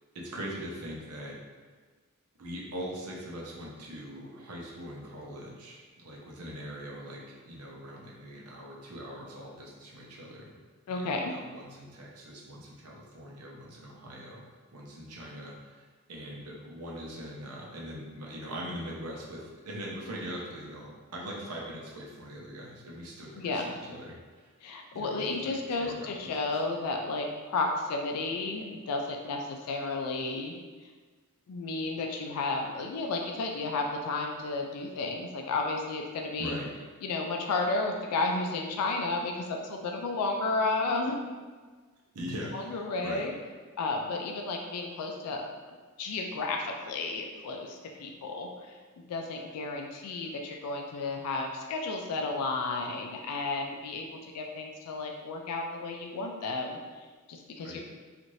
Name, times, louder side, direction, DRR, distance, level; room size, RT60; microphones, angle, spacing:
voice 1, 0.1-1.4 2.4-10.6 10.9-14.4 14.7-15.8 16.1-24.2 24.4-24.5 24.9-26.6 36.4-36.7 42.1-43.3 57.6-57.8, equal, 85° right, -3 dB, 0.7 m, -41 dB
voice 2, 10.9-11.3 23.3-23.7 24.6-30.5 31.5-36.6 37.0-41.2 42.5-43.3 43.8-45.4 46.0-48.5 49.1-56.8 57.3-57.8, left 3 dB, 90° left, 2 dB, 0.3 m, -32 dB
3.0 x 2.5 x 2.6 m, 1.4 s
head